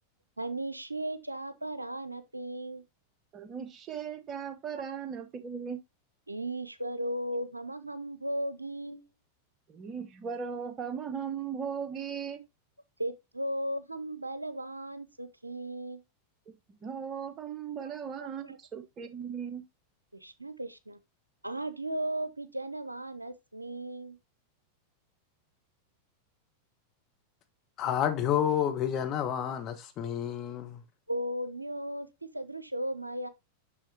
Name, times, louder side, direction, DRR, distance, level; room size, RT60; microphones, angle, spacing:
voice 1, 0.4-2.8 6.3-9.0 13.0-16.0 17.8-17.9 18.4-18.6 20.2-21.0 21.4-24.2 31.1-33.3, right 1 dB, 85° right, 0.6 m, -36 dB
voice 2, 3.3-5.8 9.7-12.4 16.5-19.6, right 7 dB, 30° right, 1.2 m, -38 dB
voice 3, 27.8-30.8, left 9 dB, 35° left, 1.3 m, -29 dB
6.3 x 6.2 x 2.9 m
figure-of-eight pair, 90°, 0 cm